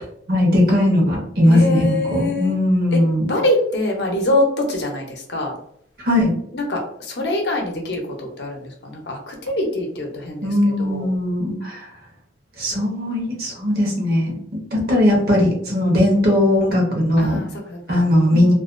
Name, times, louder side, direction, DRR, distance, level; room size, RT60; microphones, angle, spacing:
voice 1, 0.3-3.3 6.0-6.3 10.4-11.9 12.6-17.4 17.9-18.5, left 1 dB, 55° right, -1 dB, 0.8 m, -18 dB
voice 2, 1.4-2.6 2.9-3.0 3.3-5.5 6.5-10.5 10.8-11.1 17.2-18.1 18.3-18.5, left 1 dB, 65° left, 1 dB, 0.6 m, -24 dB
2.4 x 2.2 x 2.4 m, 0.67 s
head